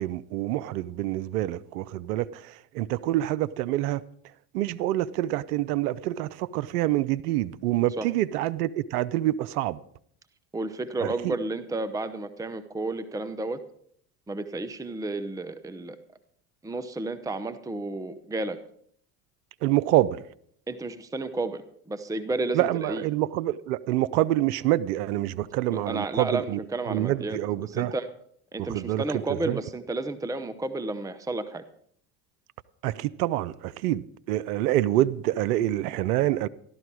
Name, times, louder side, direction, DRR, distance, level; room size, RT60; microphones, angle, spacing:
voice 1, 0.0-4.0 4.5-9.8 11.0-11.3 19.6-20.2 22.5-26.6 26.9-27.9 28.6-29.6 32.8-36.5, right 14 dB, 80° right, 0.6 m, -26 dB
voice 2, 10.5-13.6 14.3-16.0 16.6-18.6 20.7-23.0 25.7-28.1 28.5-31.6, right 2 dB, 5° right, 0.8 m, -32 dB
14.5 x 12.0 x 4.7 m
hypercardioid pair, 80°, 46 cm